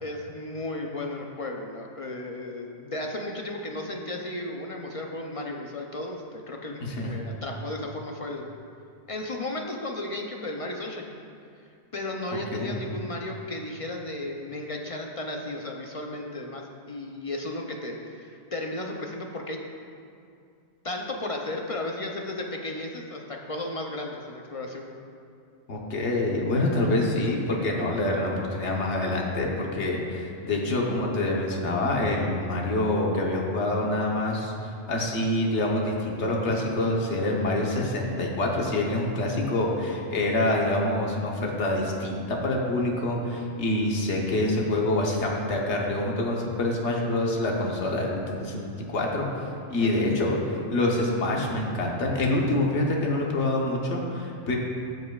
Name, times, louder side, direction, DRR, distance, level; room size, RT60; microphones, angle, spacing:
voice 1, 0.0-8.5 9.1-11.1 11.9-19.6 20.8-24.9 49.8-50.1, left 2 dB, 40° left, 1 dB, 0.5 m, -34 dB
voice 2, 6.8-7.2 12.5-12.8 25.7-34.5 34.9-49.3 49.7-54.6, left 1 dB, 80° left, -1 dB, 1.3 m, -26 dB
15.5 x 5.3 x 2.3 m, 2.4 s
omnidirectional pair, 1.2 m